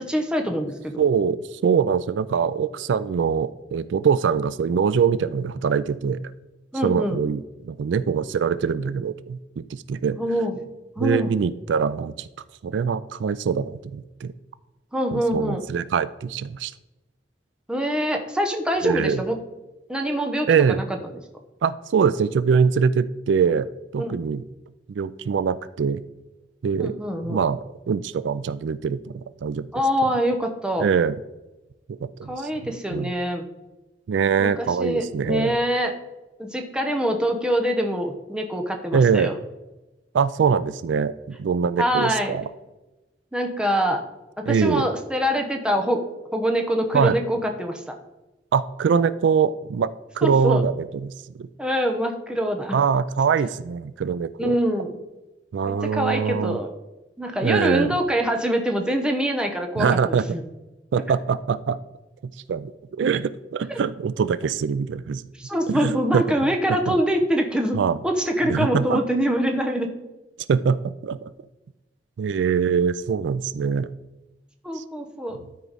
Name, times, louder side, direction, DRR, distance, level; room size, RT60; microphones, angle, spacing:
voice 1, 0.0-1.0 6.7-7.2 10.2-10.6 11.0-11.3 14.9-15.6 17.7-19.4 19.9-21.0 24.0-24.1 26.8-27.4 29.7-30.9 32.3-33.5 34.4-35.9 36.4-39.4 41.8-42.4 43.3-44.1 44.4-46.0 46.3-48.0 50.2-50.6 51.6-52.8 54.4-55.0 55.6-56.7 57.2-60.4 63.7-63.8 65.3-67.8 68.0-69.9 74.6-75.4, equal, 5° right, 3 dB, 0.9 m, -24 dB
voice 2, 1.0-6.2 6.8-10.2 11.0-12.3 12.6-14.3 15.1-16.7 18.8-19.2 20.5-20.8 21.6-24.4 24.9-26.0 26.6-26.9 27.3-27.6 27.9-29.7 30.8-31.2 32.0-32.3 32.9-33.1 34.1-35.5 38.9-39.3 40.1-42.4 44.5-44.9 46.9-47.2 48.5-49.9 50.1-51.1 51.4-51.5 52.7-54.6 55.5-56.6 57.4-57.9 59.8-60.2 60.9-61.8 62.2-65.2 65.7-66.2 66.9-67.0 67.8-68.0 68.5-69.0 70.5-71.3 72.2-73.9 74.8-74.9, right 6 dB, 85° right, 16 dB, 0.3 m, -23 dB
12.5 x 4.7 x 4.0 m, 1.1 s
head